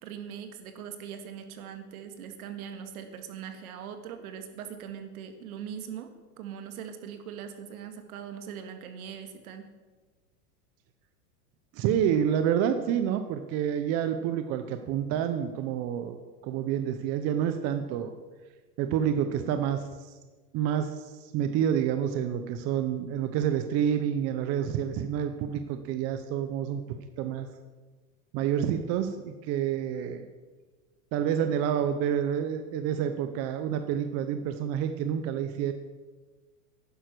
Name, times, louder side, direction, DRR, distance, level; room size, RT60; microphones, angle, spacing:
voice 1, 0.0-9.7, right 8 dB, 65° right, 7 dB, 2.1 m, -41 dB
voice 2, 11.7-16.2 16.4-18.2 18.8-20.2 20.5-27.5 28.3-30.2 31.1-35.7, right 9 dB, 30° right, 8 dB, 0.8 m, -28 dB
11.5 x 10.0 x 6.1 m, 1.3 s
hypercardioid pair, 135°, 47 cm